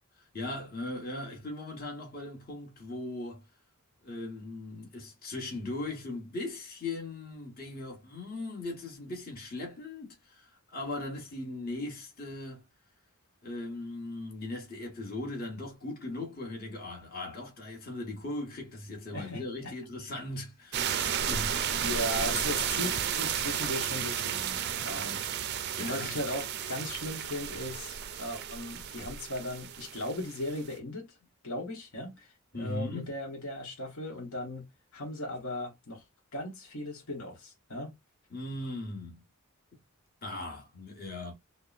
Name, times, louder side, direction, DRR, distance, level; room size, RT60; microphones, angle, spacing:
voice 1, 0.3-3.4 4.0-12.6 13.4-20.9 21.2-21.6 24.9-25.2 25.8-26.1 32.5-33.1 38.3-39.2 39.7-39.8 40.2-41.3, left 2 dB, 40° left, 1.2 m, -39 dB
voice 2, 19.1-19.7 21.8-31.2 31.4-34.7 34.9-36.0 36.3-37.9, left 1 dB, 70° left, 1.0 m, -37 dB
sound 1, 20.7-30.8, right 9 dB, 50° right, 0.4 m, -33 dB
3.5 x 2.1 x 2.4 m
head